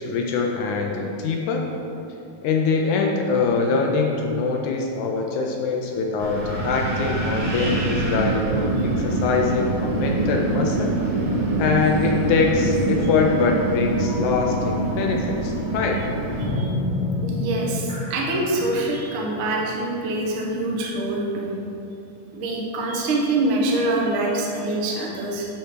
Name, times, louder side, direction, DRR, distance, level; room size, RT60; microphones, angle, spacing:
voice 1, 0.0-1.6 2.4-11.0 11.6-16.0, left 4 dB, 80° left, 1 dB, 1.7 m, -23 dB
Wind, 6.2-16.5, right 2 dB, 50° right, 1.6 m, -24 dB
sound 1, 6.5-12.3 12.6-12.9 13.9-20.5, left 2 dB, 45° left, 0.8 m, -33 dB
voice 2, 16.4-16.7 17.2-21.5 22.3-25.5, right 2 dB, 75° right, -2 dB, 1.2 m, -25 dB
12.0 x 4.5 x 5.1 m, 2.8 s
omnidirectional pair, 4.4 m